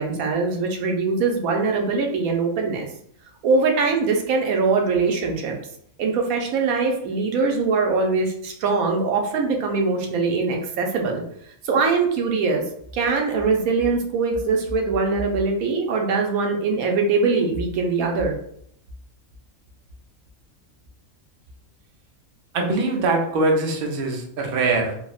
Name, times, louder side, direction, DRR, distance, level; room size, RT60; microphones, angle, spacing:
voice 1, 0.0-2.9 3.4-5.6 6.0-11.2 11.6-12.6 12.9-18.3, right 4 dB, 85° right, 2 dB, 1.0 m, -22 dB
voice 2, 22.5-24.9, right 3 dB, 60° right, 2 dB, 0.6 m, -22 dB
3.4 x 2.0 x 2.4 m, 0.68 s
omnidirectional pair, 1.5 m